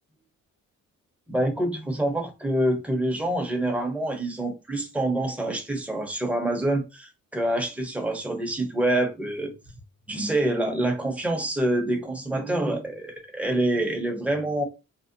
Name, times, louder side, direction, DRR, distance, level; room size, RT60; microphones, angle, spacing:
voice 1, 1.3-9.5 10.1-14.6, right 1 dB, 5° right, 0.7 m, -26 dB
2.6 x 2.0 x 2.5 m
cardioid pair, 90°, 30 cm